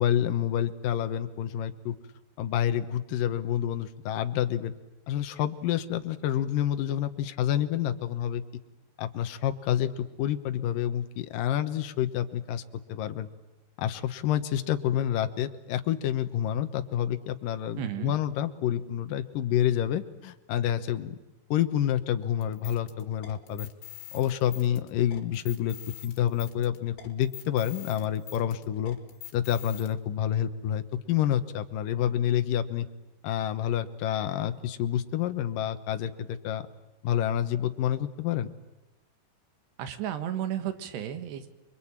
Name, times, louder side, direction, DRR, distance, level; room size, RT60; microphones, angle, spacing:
voice 1, 0.0-2.0 2.4-4.7 5.1-8.4 9.0-12.6 12.9-13.3 13.8-21.2 21.5-23.7 24.1-25.8 26.0-29.0 29.3-32.9 33.2-36.7 37.0-38.5, left 10 dB, 70° left, 8 dB, 2.4 m, -28 dB
voice 2, 17.8-18.2 39.8-41.5, right 10 dB, 80° right, 9 dB, 3.7 m, -33 dB
sound 1, 22.4-29.9, left 13 dB, 85° left, 4.3 m, -45 dB
29.0 x 23.0 x 8.8 m, 0.97 s
omnidirectional pair, 4.9 m